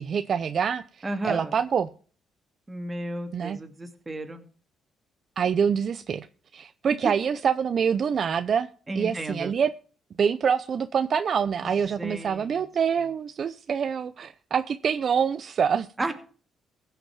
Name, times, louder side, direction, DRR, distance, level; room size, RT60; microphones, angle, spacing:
voice 1, 0.0-1.9 3.3-3.6 5.4-6.3 6.5-8.7 9.0-9.7 10.2-15.9, right 7 dB, 55° right, 12 dB, 0.6 m, -25 dB
voice 2, 1.0-1.6 2.7-4.5 8.9-9.5 11.6-12.6 16.0-16.1, right 1 dB, 20° right, 6 dB, 2.4 m, -33 dB
16.0 x 5.8 x 7.1 m, 0.41 s
cardioid pair, 90°, 0 cm